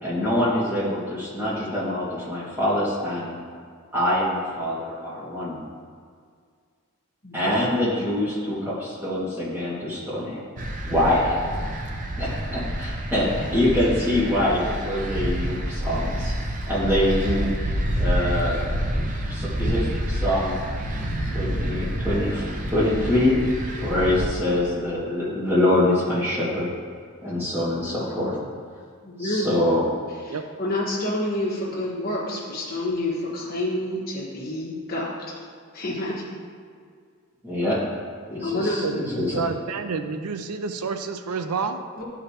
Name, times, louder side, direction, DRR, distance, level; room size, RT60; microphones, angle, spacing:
voice 1, 0.0-3.3 3.9-5.6 7.3-10.4 10.9-11.4 12.2-16.3 16.7-18.7 19.3-20.6 21.3-23.3 23.8-26.7 27.2-28.4 29.2-29.8 37.4-37.8 38.3-39.3, left 1 dB, 10° right, -9 dB, 2.0 m, -24 dB
voice 2, 7.2-7.6 29.0-29.5 30.2-35.3 35.7-36.2 38.4-38.8 42.0-42.1, left 1 dB, 40° left, -5 dB, 1.4 m, -28 dB
sound 1, 10.6-24.2, right 1 dB, 35° right, 0.6 m, -28 dB
voice 3, 39.3-41.8, right 5 dB, 90° right, 8 dB, 0.5 m, -29 dB
11.5 x 4.9 x 2.9 m, 2.1 s
head